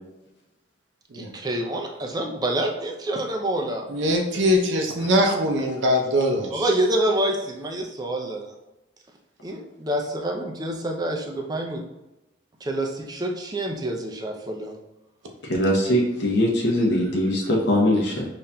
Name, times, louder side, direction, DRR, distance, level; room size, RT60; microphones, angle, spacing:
voice 1, 1.1-3.9 6.5-8.5 9.4-11.8 12.6-14.7, right 1 dB, 20° right, 2 dB, 0.4 m, -27 dB
voice 2, 3.9-6.7, equal, 85° right, 2 dB, 0.6 m, -22 dB
voice 3, 15.4-18.3, left 1 dB, 65° left, -2 dB, 0.7 m, -21 dB
5.5 x 2.5 x 2.2 m, 0.95 s
head